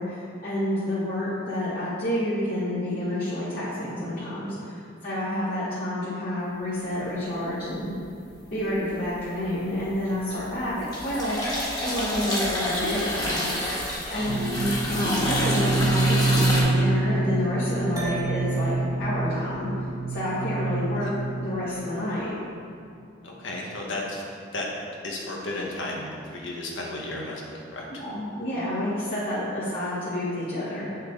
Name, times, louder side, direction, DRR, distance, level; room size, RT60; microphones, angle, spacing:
voice 1, 0.0-7.9 8.5-13.5 14.1-18.7 19.0-19.7 20.1-21.1 21.4-22.4 28.0-31.0, left 1 dB, 50° left, -12 dB, 2.0 m, -29 dB
sound 1, 8.5-9.1 9.4-16.6, left 1 dB, 20° left, 1.8 m, -29 dB
voice 2, 14.1-14.4 20.9-21.1 23.2-24.7 25.0-27.9, left 2 dB, 75° left, -2 dB, 1.5 m, -34 dB
sound 2, 14.3-21.8, right 2 dB, 60° right, 0.5 m, -26 dB
sound 3, 18.0-22.5, right 3 dB, 20° right, 1.4 m, -42 dB
8.4 x 6.5 x 4.0 m, 2.5 s
head